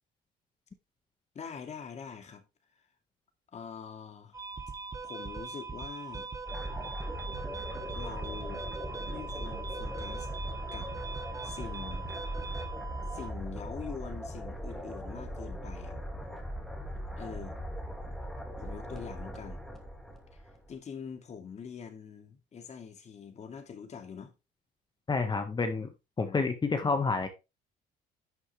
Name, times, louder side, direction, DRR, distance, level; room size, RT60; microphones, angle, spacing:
voice 1, 1.3-2.4 2.8-2.9 3.5-4.4 5.0-6.3 7.9-8.7 9.0-10.3 10.7-10.9 11.4-12.1 13.1-16.0 17.2-17.6 18.6-19.6 20.3-20.4 20.7-24.3 26.2-26.5, left 6 dB, 40° left, 2.4 m, -44 dB
sound 1, 4.3-13.3, right 4 dB, 20° right, 1.2 m, -41 dB
sound 2, 6.5-20.7, equal, ahead, 2.6 m, -39 dB
voice 2, 25.1-25.9 26.2-27.3, left 4 dB, 25° left, 1.6 m, -29 dB
11.0 x 6.3 x 3.4 m
cardioid pair, 110°, 17 cm